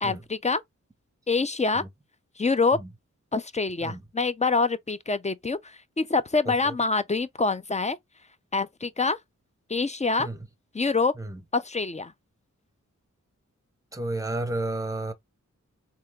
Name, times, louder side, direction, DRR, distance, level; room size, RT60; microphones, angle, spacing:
voice 1, 0.0-0.6 1.3-1.8 2.4-2.8 3.3-8.0 8.5-9.2 9.7-10.3 10.7-11.1 11.5-12.1, left 4 dB, 25° left, 0.4 m, -25 dB
voice 2, 13.9-15.1, right 2 dB, 10° right, 0.8 m, -31 dB
3.4 x 2.8 x 3.3 m
wide cardioid pair, 70°, 31 cm